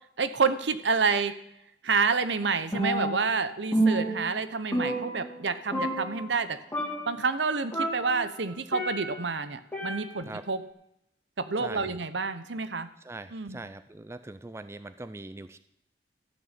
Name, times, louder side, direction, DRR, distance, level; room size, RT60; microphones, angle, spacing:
voice 1, 0.2-1.3 1.8-6.6 7.1-10.6 11.4-12.9 13.3-13.6, right 4 dB, 70° right, 12 dB, 0.9 m, -28 dB
Percussion, 2.7-3.4 3.7-5.5 5.7-6.4 6.7-7.2 7.7-9.3 9.7-10.4, right 1 dB, 10° left, 2.6 m, -30 dB
voice 2, 11.6-12.0 13.0-15.6, right 2 dB, 15° right, 12 dB, 0.4 m, -41 dB
13.5 x 6.2 x 8.9 m, 0.79 s
head